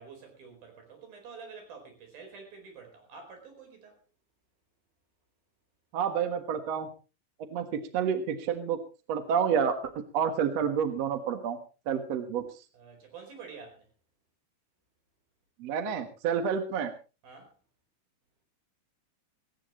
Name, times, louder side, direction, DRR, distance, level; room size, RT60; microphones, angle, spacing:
voice 1, 0.0-4.0 12.7-13.9 17.2-17.5, right 5 dB, 85° right, 4 dB, 6.4 m, -48 dB
voice 2, 5.9-6.9 7.5-8.8 9.1-9.8 10.1-11.6 11.9-12.4 15.6-16.9, right 7 dB, 55° right, 8 dB, 2.3 m, -29 dB
17.5 x 17.5 x 3.1 m, 0.33 s
omnidirectional pair, 4.1 m